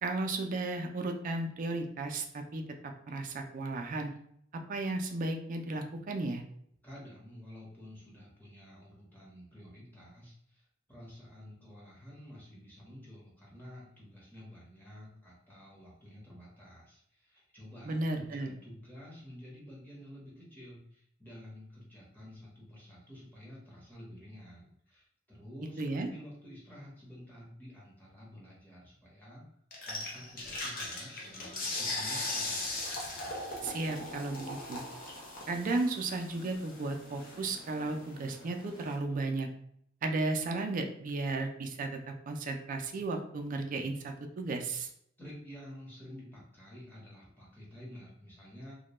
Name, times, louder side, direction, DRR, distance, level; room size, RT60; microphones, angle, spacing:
voice 1, 0.0-2.6 3.1-4.1 4.5-6.4 17.8-18.5 25.8-26.1 33.6-34.8 35.5-39.5 40.0-44.9, right 2 dB, 45° right, 4 dB, 0.3 m, -34 dB
voice 2, 6.8-29.4 29.8-32.9 45.2-48.8, equal, 10° left, -6 dB, 0.8 m, -50 dB
sound 1, 29.7-39.0, left 2 dB, 45° left, 0.6 m, -39 dB
2.2 x 2.1 x 2.9 m, 0.69 s
head